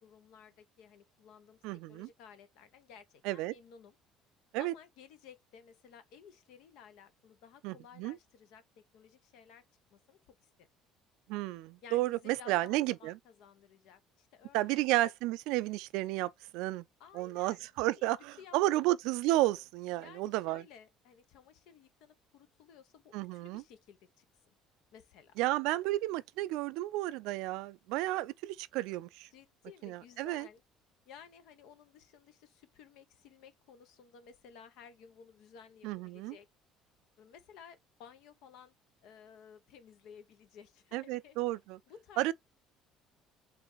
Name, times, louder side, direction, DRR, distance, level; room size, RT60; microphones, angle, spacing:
voice 1, 0.0-4.0 4.6-9.6 9.9-10.7 11.8-14.9 17.0-18.1 18.4-18.8 20.0-24.2 24.9-25.3 29.3-30.6 31.1-36.5 37.2-38.7 39.0-41.4 41.9-42.3, left 7 dB, 75° left, 0.8 m, -56 dB
voice 2, 1.6-2.1 3.2-3.5 4.5-4.7 7.6-8.2 11.3-13.1 14.5-16.8 17.1-20.6 23.1-23.6 25.4-29.3 29.8-30.5 35.8-36.4 40.9-41.8 42.2-42.3, right 17 dB, 75° right, 0.3 m, -32 dB
4.6 x 2.6 x 3.9 m
supercardioid pair, 75°, 0 cm